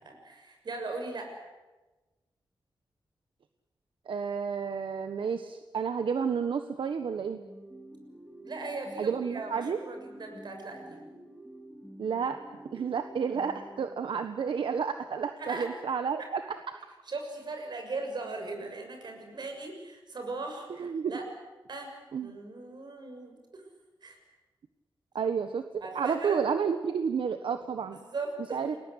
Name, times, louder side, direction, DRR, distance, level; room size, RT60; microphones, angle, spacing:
voice 1, 0.0-1.4 8.4-11.0 15.4-15.7 17.1-20.7 21.1-21.2 21.7-22.0 22.2-23.6 24.0-24.2 25.8-26.4 27.9-28.8, right 3 dB, 60° right, 4 dB, 6.8 m, -38 dB
voice 2, 4.1-7.4 9.0-9.8 12.0-12.4 12.7-16.4 20.8-21.1 22.1-22.3 25.1-25.6 25.9-28.0 28.5-28.8, right 6 dB, 85° right, 8 dB, 1.4 m, -30 dB
sound 1, 7.3-14.5, right 1 dB, ahead, 4.4 m, -49 dB
29.5 x 21.0 x 8.3 m, 1.1 s
wide cardioid pair, 135°, 8 cm